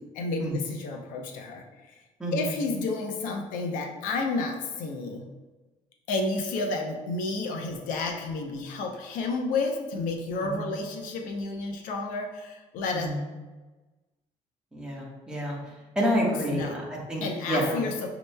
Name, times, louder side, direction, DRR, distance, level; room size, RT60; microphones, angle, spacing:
voice 1, 0.0-2.0 2.3-5.3 6.1-13.1 16.5-16.8 17.2-18.1, left 3 dB, 90° left, 3 dB, 0.7 m, -31 dB
voice 2, 2.2-2.5 10.5-10.6 12.9-13.2 14.7-15.6 15.9-17.8, equal, 5° right, -5 dB, 1.2 m, -29 dB
6.4 x 2.9 x 2.2 m, 1.2 s
cardioid pair, 125°, 13 cm